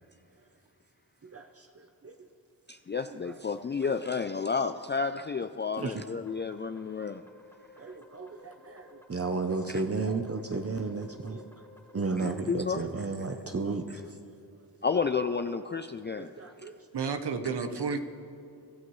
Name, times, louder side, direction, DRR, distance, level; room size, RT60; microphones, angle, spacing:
voice 1, 1.2-2.1 3.0-3.3 3.8-3.9 5.8-6.0 7.8-11.4 11.9-14.2 16.2-16.7, right 3 dB, 35° right, 5 dB, 0.7 m, -34 dB
voice 2, 2.7-7.2 9.7-9.9 12.2-12.8 14.8-16.3, left 5 dB, 30° left, 9 dB, 0.4 m, -31 dB
sound 1, 6.2-12.5, left 2 dB, 5° left, 1.9 m, -56 dB
voice 3, 16.9-18.0, right 5 dB, 80° right, 8 dB, 1.0 m, -31 dB
22.5 x 13.5 x 3.1 m, 2.6 s
wide cardioid pair, 75°, 40 cm